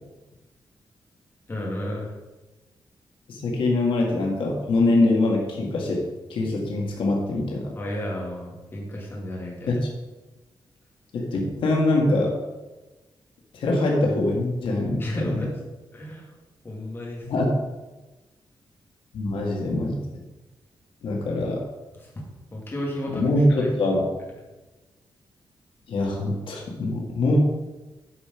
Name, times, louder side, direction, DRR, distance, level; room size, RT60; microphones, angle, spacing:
voice 1, 1.5-2.1 7.8-9.7 15.0-15.6 15.9-16.3 16.6-17.5 22.0-22.1 22.5-24.0, left 1 dB, 25° left, -3 dB, 2.4 m, -33 dB
voice 2, 3.3-6.0 6.3-7.7 9.7-9.8 11.1-12.4 13.5-15.4 17.3-17.5 19.1-20.0 21.0-21.7 23.1-24.1 25.9-27.4, left 2 dB, 85° left, 0 dB, 1.8 m, -23 dB
9.6 x 5.2 x 5.8 m, 1.1 s
wide cardioid pair, 160°, 9 cm